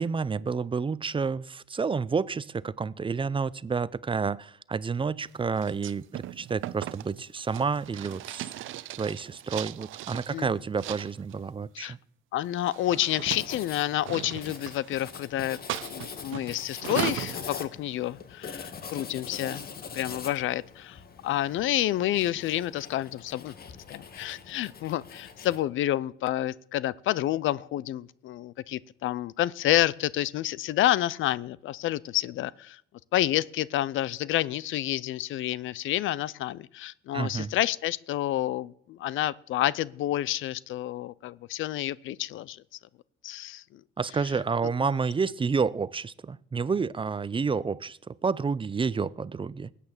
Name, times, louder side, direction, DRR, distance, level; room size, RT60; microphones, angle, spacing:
voice 1, 0.0-8.5 9.0-12.0 37.1-37.5 44.0-49.7, right 5 dB, 25° right, 20 dB, 0.5 m, -29 dB
sound 1, 5.6-10.4 10.8-11.4 12.4-15.2 15.7-17.4, right 14 dB, 80° right, 0.6 m, -37 dB
voice 2, 12.3-23.5 23.9-32.8 33.1-42.6 43.2-43.8, left 13 dB, 80° left, 22 dB, 0.6 m, -29 dB
Writing, 13.2-25.6, left 6 dB, 50° left, 1.8 m, -43 dB
20.0 x 8.5 x 7.3 m, 0.67 s
cardioid pair, 90°, 20 cm